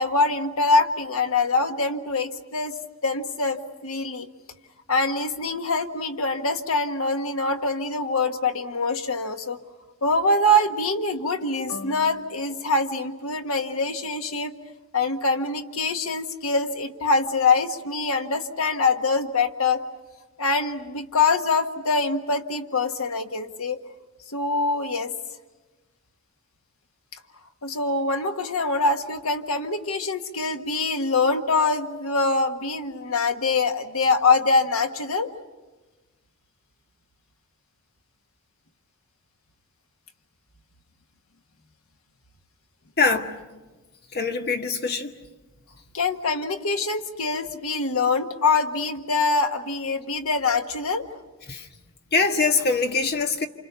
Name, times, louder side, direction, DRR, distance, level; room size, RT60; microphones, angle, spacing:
voice 1, 0.0-2.7 3.0-4.3 4.9-9.6 10.0-14.5 14.9-19.8 20.4-23.8 24.3-25.1 27.6-35.3 45.9-51.1, left 3 dB, 80° left, 1.5 m, -24 dB
voice 2, 43.0-43.3 44.1-45.1 51.5-51.7 52.1-53.5, left 4 dB, 50° left, 1.7 m, -23 dB
29.0 x 27.0 x 6.9 m
head